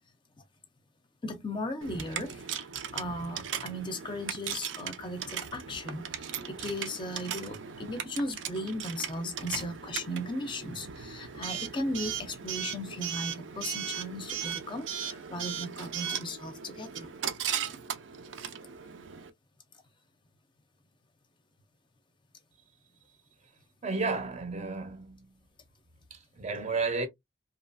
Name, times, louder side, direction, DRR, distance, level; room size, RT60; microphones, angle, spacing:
voice 1, 1.2-17.1, left 1 dB, 25° left, 0.5 m, -37 dB
Coin (dropping) / Alarm, 1.8-19.3, right 8 dB, 80° right, 0.5 m, -38 dB
voice 2, 23.8-25.3 26.1-27.1, right 4 dB, 40° right, 0.6 m, -32 dB
2.9 x 2.3 x 2.5 m
head